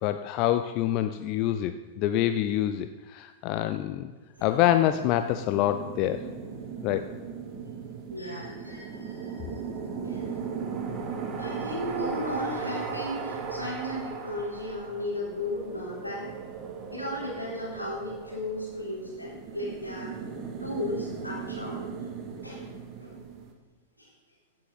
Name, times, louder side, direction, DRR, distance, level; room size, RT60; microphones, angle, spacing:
voice 1, 0.0-4.1 4.4-6.2 6.8-7.1, left 12 dB, 40° left, 10 dB, 0.5 m, -26 dB
sound 1, 4.4-23.5, right 5 dB, 30° right, 1.6 m, -38 dB
voice 2, 8.1-9.6 10.0-10.2 11.4-16.3 16.9-20.1 20.6-21.8 22.4-22.7 23.0-23.1 24.0-24.1, left 1 dB, 90° left, -6 dB, 3.9 m, -35 dB
16.0 x 7.6 x 4.0 m, 1.4 s
figure-of-eight pair, 90°, 0 cm